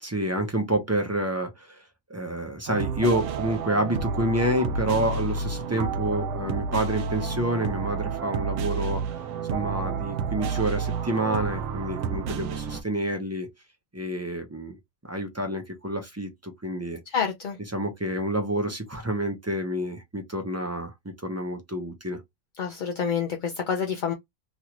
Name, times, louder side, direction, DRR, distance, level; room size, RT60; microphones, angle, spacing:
voice 1, 0.0-1.8 2.1-9.0 9.5-13.5 13.9-14.8 15.0-17.0 17.7-20.9 21.2-22.2, right 1 dB, 15° right, 0.5 m, -28 dB
sound 1, 2.7-12.8, right 5 dB, 75° right, 0.9 m, -30 dB
voice 2, 17.1-17.6 22.6-24.1, left 7 dB, 55° left, 0.5 m, -28 dB
3.1 x 2.5 x 2.9 m
omnidirectional pair, 1.3 m